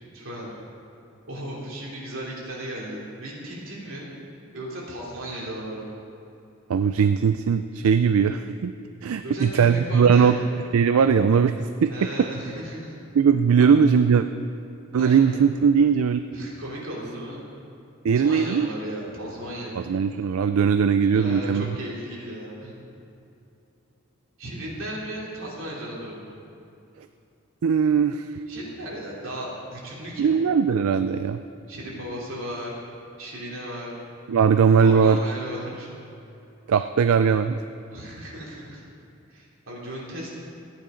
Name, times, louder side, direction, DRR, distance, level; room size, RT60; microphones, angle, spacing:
voice 1, 0.1-0.5 1.2-4.1 4.5-6.0 9.2-10.4 11.9-12.9 15.0-15.4 16.3-17.5 18.1-19.8 21.1-22.8 24.4-26.3 28.5-30.4 31.7-32.7 33.2-33.9 34.8-35.9 37.9-38.8 39.3-40.3, right 1 dB, 65° right, -5 dB, 3.0 m, -35 dB
voice 2, 6.7-8.7 9.0-10.4 10.7-11.9 13.1-14.3 14.9-16.2 18.0-18.7 19.8-21.7 27.6-28.3 30.2-31.4 34.3-35.2 36.7-37.6, right 6 dB, 85° right, 10 dB, 0.4 m, -19 dB
14.5 x 9.3 x 5.1 m, 2.7 s
head